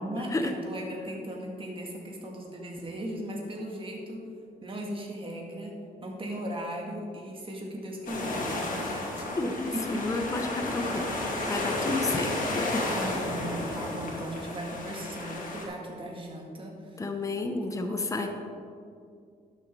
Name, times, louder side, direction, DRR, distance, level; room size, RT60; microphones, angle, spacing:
voice 1, 0.0-4.3 4.6-9.3 9.7-10.5 12.9-17.0 17.6-18.3, equal, 35° right, 0 dB, 2.2 m, -37 dB
sound 1, 8.1-15.7, left 2 dB, 55° left, 2.3 m, -32 dB
voice 2, 9.4-11.2 11.5-12.9 17.0-18.3, left 2 dB, 20° left, 5 dB, 0.8 m, -31 dB
11.5 x 7.0 x 4.8 m, 2.3 s
cardioid pair, 100°, 16 cm